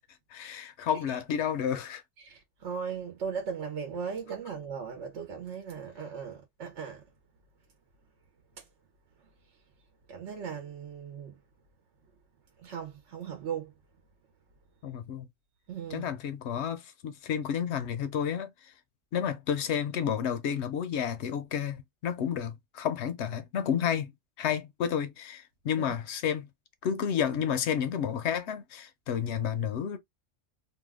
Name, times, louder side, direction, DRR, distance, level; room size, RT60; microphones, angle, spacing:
voice 1, 0.3-2.0 14.8-15.3 15.9-18.7 19.1-24.1 24.4-26.5 26.8-30.0, left 8 dB, 70° left, 0.8 m, -31 dB
voice 2, 2.2-7.1 8.6-8.7 10.1-11.4 12.6-13.7 15.7-16.1 25.8-25.9, right 6 dB, 75° right, 1.0 m, -38 dB
2.7 x 2.3 x 3.3 m
omnidirectional pair, 1.3 m